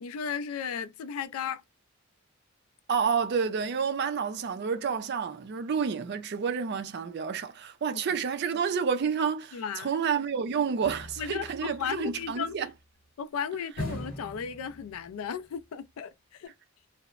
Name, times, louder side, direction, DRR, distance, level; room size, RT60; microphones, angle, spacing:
voice 1, 0.0-1.6 7.9-8.0 9.5-10.0 11.2-12.5 13.2-16.5, left 7 dB, 70° left, 0.3 m, -35 dB
voice 2, 2.9-12.7, right 6 dB, 50° right, 0.4 m, -29 dB
sound 1, 10.8-12.5 13.8-15.3 15.6-15.7, left 1 dB, 40° left, 0.9 m, -40 dB
2.9 x 2.0 x 2.3 m
head